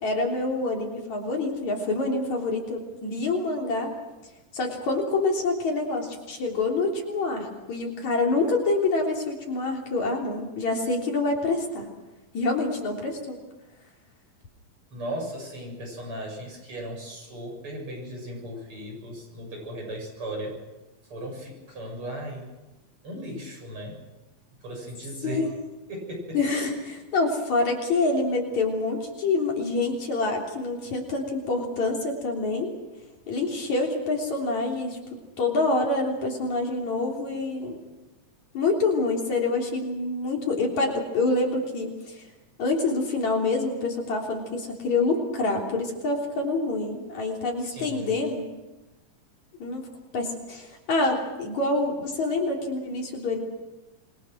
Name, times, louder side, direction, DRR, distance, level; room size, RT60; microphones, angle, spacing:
voice 1, 0.0-3.9 4.5-11.9 12.3-13.4 25.2-25.5 26.3-32.7 33.3-35.0 35.4-37.8 38.5-42.2 42.6-48.4 49.6-49.8 50.1-53.4, left 3 dB, 60° left, 0 dB, 4.7 m, -26 dB
voice 2, 14.9-20.6 21.1-22.5 23.0-24.0 24.6-25.5 25.9-26.4 47.6-48.1, right 1 dB, 40° right, 0 dB, 8.2 m, -36 dB
27.0 x 23.0 x 6.3 m, 1.1 s
omnidirectional pair, 3.8 m